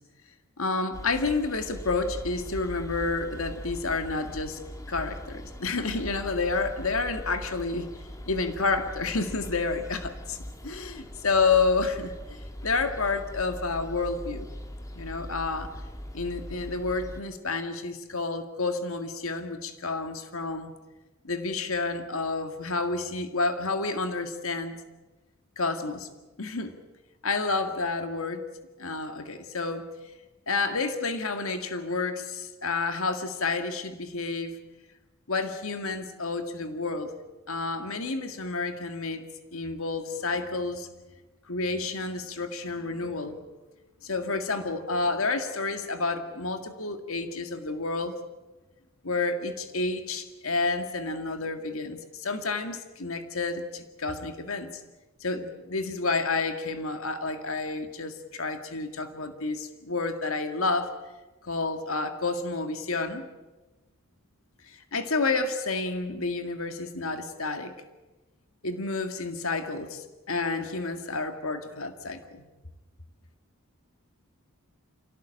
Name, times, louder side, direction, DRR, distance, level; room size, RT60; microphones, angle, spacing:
voice 1, 0.6-4.6 4.9-7.9 8.3-10.4 10.6-14.5 14.9-15.7 16.1-20.7 21.2-24.8 25.6-26.1 26.4-26.7 27.2-28.4 28.8-29.9 30.5-34.6 35.3-37.1 37.5-39.2 39.5-40.9 41.5-43.4 44.0-48.2 49.0-54.7 55.2-60.9 61.4-63.3 64.7-67.7 68.6-72.5, left 3 dB, 70° left, 8 dB, 2.0 m, -30 dB
sound 1, 0.9-17.2, equal, 15° left, 1.8 m, -41 dB
26.5 x 17.5 x 8.8 m, 1.2 s
head